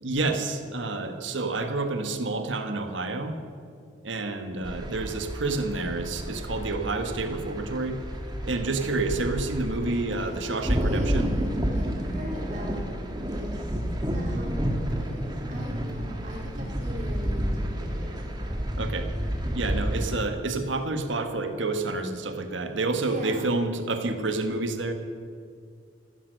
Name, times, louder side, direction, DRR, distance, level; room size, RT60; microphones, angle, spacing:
voice 1, 0.0-3.4 4.0-8.0 8.4-11.3 18.8-19.1 19.5-24.9, right 3 dB, 80° right, 6 dB, 1.4 m, -29 dB
sound 1, 4.6-20.2, equal, 20° right, 1.5 m, -30 dB
voice 2, 8.5-8.9 10.2-10.4 10.6-12.8 13.3-13.8 14.1-18.7 23.0-23.5, equal, 40° right, -3 dB, 3.9 m, -39 dB
15.0 x 13.0 x 6.6 m, 2.3 s
head